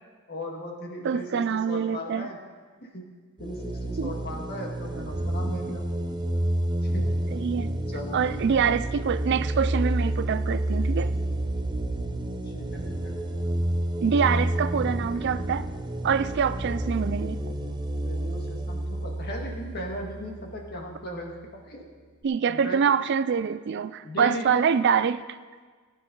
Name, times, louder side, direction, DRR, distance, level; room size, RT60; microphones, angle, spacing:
voice 1, 0.3-2.4 2.9-3.0 3.4-5.9 6.8-7.1 7.9-8.6 11.8-13.2 14.0-14.3 18.0-21.3 21.7-21.9 22.5-22.8 24.0-24.6, equal, 45° left, 0 dB, 1.9 m, -37 dB
voice 2, 1.0-2.3 4.0-4.1 7.3-7.7 8.1-11.1 14.0-15.7 16.0-17.4 22.2-25.2, right 6 dB, 50° right, 14 dB, 0.4 m, -25 dB
sound 1, 3.4-20.8, right 1 dB, 20° right, 0.7 m, -29 dB
18.5 x 9.2 x 3.9 m, 1.5 s
head